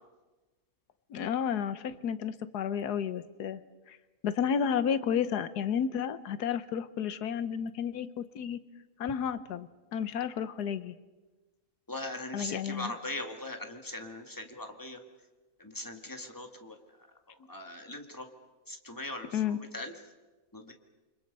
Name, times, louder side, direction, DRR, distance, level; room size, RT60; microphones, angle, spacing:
voice 1, 1.1-3.6 3.9-4.0 4.2-8.6 9.0-10.9 12.3-12.9 19.3-19.6, left 8 dB, 85° left, 13 dB, 1.5 m, -32 dB
voice 2, 11.9-15.0 15.6-16.8 17.5-18.3 18.7-19.9 20.5-20.7, left 2 dB, 15° left, 4 dB, 2.0 m, -40 dB
29.0 x 25.0 x 5.4 m, 1.2 s
omnidirectional pair, 1.6 m